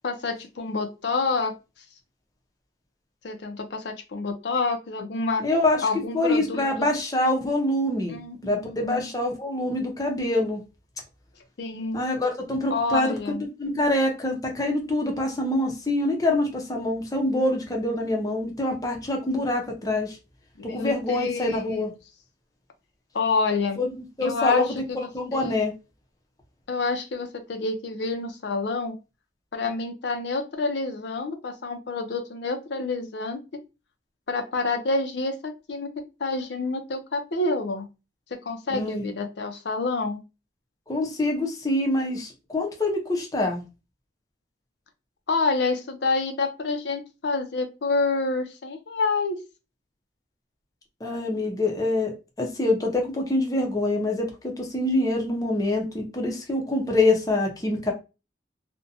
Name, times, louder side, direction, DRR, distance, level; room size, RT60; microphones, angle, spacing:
voice 1, 0.0-1.5 3.2-5.4 5.8-6.9 8.1-9.1 11.6-12.0 12.7-13.4 20.6-21.9 23.1-23.8 24.2-25.6 26.7-29.0 29.5-33.4 34.3-35.9 36.2-37.9 38.4-40.2 45.3-49.4, left 3 dB, 65° left, 0.5 m, -28 dB
voice 2, 5.4-5.8 6.1-10.6 11.9-13.1 13.6-20.2 20.6-21.9 23.8-25.7 38.7-39.1 40.9-43.6 51.0-52.1 52.4-57.9, left 2 dB, 20° left, 0.5 m, -25 dB
2.5 x 2.1 x 2.6 m
head